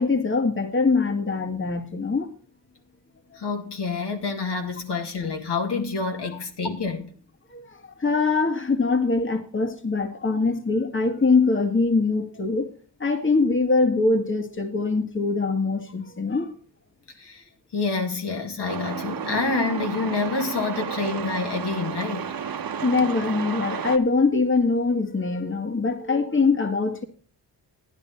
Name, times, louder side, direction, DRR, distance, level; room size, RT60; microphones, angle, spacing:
voice 1, 0.0-2.3 3.3-3.4 7.5-12.7 13.0-16.5 22.8-27.0, left 4 dB, 30° left, 1.8 m, -23 dB
voice 2, 3.4-7.1 17.2-17.4 17.7-22.3, left 4 dB, 70° left, 2.4 m, -27 dB
Truck, 18.7-24.0, right 7 dB, 55° right, 1.0 m, -32 dB
11.0 x 10.5 x 4.2 m
cardioid pair, 55°, 42 cm